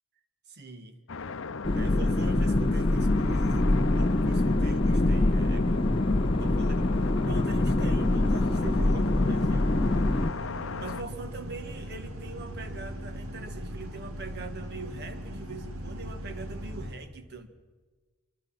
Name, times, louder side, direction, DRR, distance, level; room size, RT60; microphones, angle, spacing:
voice 1, 0.5-1.0 1.7-5.9 6.4-9.7 10.8-17.5, right 3 dB, 50° right, 8 dB, 1.6 m, -43 dB
sound 1, 1.1-11.0, left 4 dB, 60° left, 0.7 m, -37 dB
sound 2, 1.6-10.3, left 2 dB, 25° left, 0.6 m, -24 dB
sound 3, 8.0-16.9, equal, 75° right, 2.3 m, -39 dB
25.5 x 23.5 x 5.9 m, 1.4 s
head